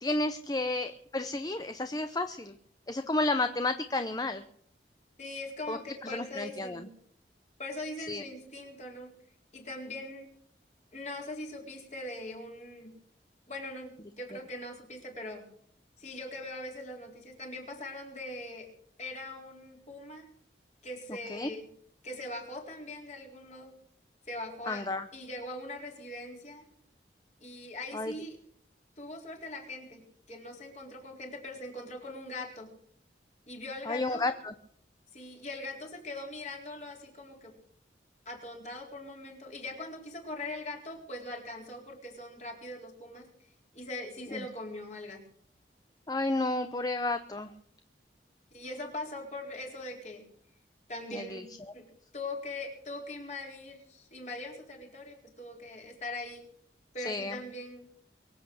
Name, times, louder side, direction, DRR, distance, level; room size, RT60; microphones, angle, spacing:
voice 1, 0.0-2.5 2.9-4.4 5.7-5.8 6.1-6.8 8.1-8.2 21.3-21.5 24.7-25.0 27.9-28.1 33.9-34.5 44.3-44.4 46.1-47.5 51.1-51.4 57.0-57.4, left 2 dB, 20° left, 9 dB, 0.7 m, -31 dB
voice 2, 5.2-6.9 7.6-9.1 9.5-10.3 10.9-12.9 13.5-15.5 16.0-18.7 19.0-20.3 20.8-21.7 22.0-23.7 24.3-24.9 25.1-26.7 27.4-28.4 29.0-30.0 30.3-32.7 33.5-34.3 35.1-37.5 38.3-43.3 43.7-45.2 48.5-50.2 50.9-51.9 52.1-56.4 56.9-57.9, left 2 dB, 40° left, 1 dB, 4.2 m, -41 dB
23.0 x 8.4 x 6.4 m, 0.63 s
head